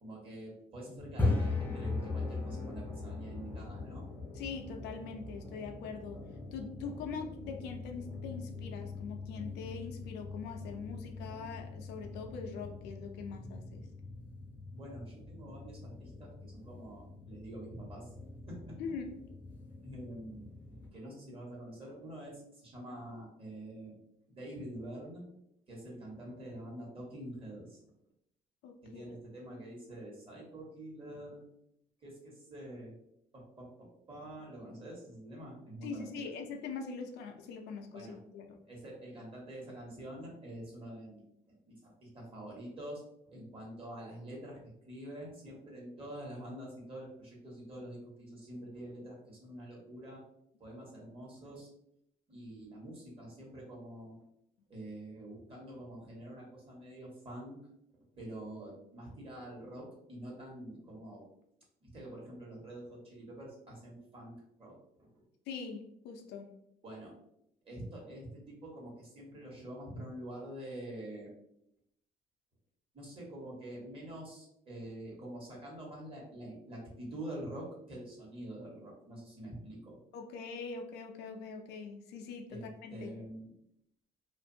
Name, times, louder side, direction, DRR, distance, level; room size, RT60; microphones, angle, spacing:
voice 1, 0.0-4.0 14.7-18.6 19.8-20.5 20.9-24.0 24.3-25.2 25.7-27.8 28.8-31.4 32.0-32.9 33.3-36.3 37.9-38.2 38.6-50.2 50.6-51.7 52.3-54.2 54.7-57.6 57.9-61.2 61.8-65.2 66.8-67.1 67.6-71.3 72.9-80.0 82.5-83.5, right 1 dB, 35° right, -3 dB, 1.2 m, -46 dB
sound 1, 1.0-20.9, left 3 dB, 10° left, 0.6 m, -40 dB
voice 2, 4.3-6.3 6.5-13.9 18.8-19.1 28.6-29.2 35.8-38.6 65.5-66.5 80.1-83.1, left 5 dB, 80° left, 4 dB, 0.5 m, -43 dB
2.5 x 2.5 x 2.6 m, 0.76 s
cardioid pair, 110°, 17 cm